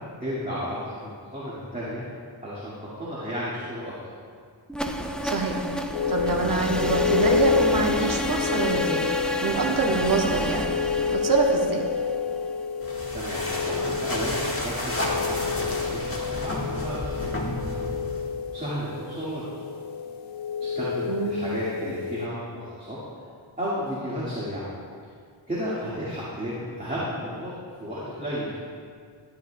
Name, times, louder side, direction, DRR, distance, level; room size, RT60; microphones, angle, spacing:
voice 1, 0.2-2.0 2.4-3.9 13.1-17.7 18.5-19.7 20.6-23.0 23.6-24.7 25.5-27.5 27.8-28.5, equal, 15° right, -9 dB, 1.9 m, -33 dB
sound 1, 4.7-12.6, equal, ahead, 0.4 m, -30 dB
voice 2, 5.2-5.6 6.1-9.0 9.4-10.6 11.1-11.9 21.1-21.4, right 3 dB, 45° right, -1 dB, 1.2 m, -25 dB
sound 2, 5.9-22.3, left 6 dB, 80° left, 0.8 m, -29 dB
sound 3, 12.8-18.4, left 1 dB, 30° left, 1.3 m, -32 dB
12.5 x 10.5 x 2.2 m, 2.1 s
wide cardioid pair, 115°, 47 cm